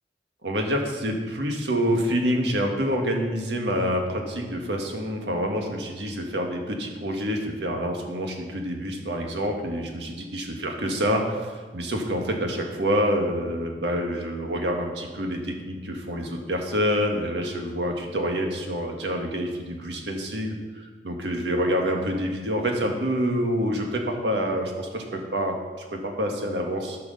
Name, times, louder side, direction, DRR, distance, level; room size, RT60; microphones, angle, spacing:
voice 1, 0.4-27.0, equal, 85° right, 2 dB, 1.6 m, -27 dB
13.0 x 4.8 x 6.5 m, 1.4 s
head